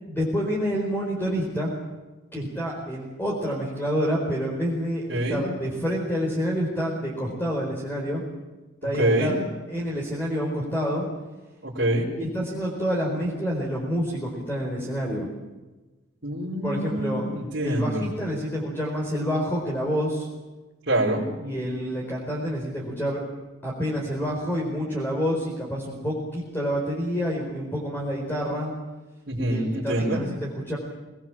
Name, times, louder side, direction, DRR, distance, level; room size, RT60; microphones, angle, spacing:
voice 1, 0.1-1.7 2.3-8.2 8.8-11.1 12.2-15.3 16.6-17.3 17.6-20.3 21.4-23.2 23.6-28.7 29.5-30.8, equal, 10° left, -3 dB, 4.6 m, -28 dB
voice 2, 5.1-5.4 8.9-9.4 11.6-12.1 16.2-18.1 20.9-21.2 29.3-30.2, right 1 dB, 55° right, -8 dB, 4.9 m, -25 dB
26.5 x 20.5 x 7.5 m, 1.2 s
head